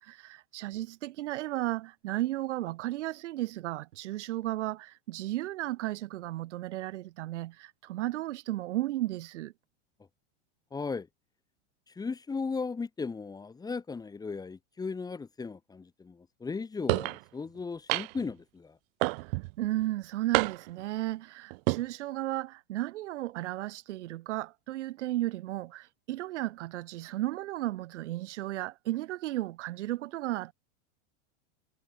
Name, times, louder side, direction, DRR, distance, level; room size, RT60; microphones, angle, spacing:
voice 1, 0.0-9.5 19.6-30.5, right 16 dB, 75° right, 5.0 m, -34 dB
voice 2, 10.7-11.1 12.0-18.8, left 4 dB, 10° left, 3.3 m, -36 dB
sound 1, 16.9-17.2 17.9-18.3 19.0-19.5 20.3-20.8 21.5-21.8, right 27 dB, 55° right, 4.5 m, -28 dB
supercardioid pair, 160°, 35 cm